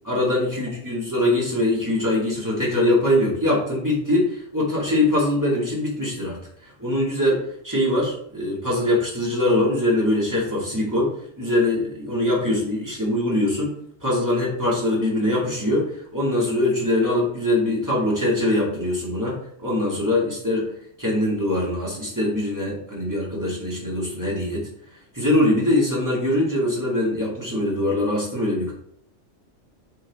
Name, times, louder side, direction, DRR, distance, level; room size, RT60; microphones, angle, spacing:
voice 1, 0.0-6.4 6.8-20.7 21.0-24.7 25.1-28.7, left 1 dB, 15° right, -5 dB, 2.4 m, -22 dB
7.4 x 4.1 x 3.7 m, 0.68 s
omnidirectional pair, 1.2 m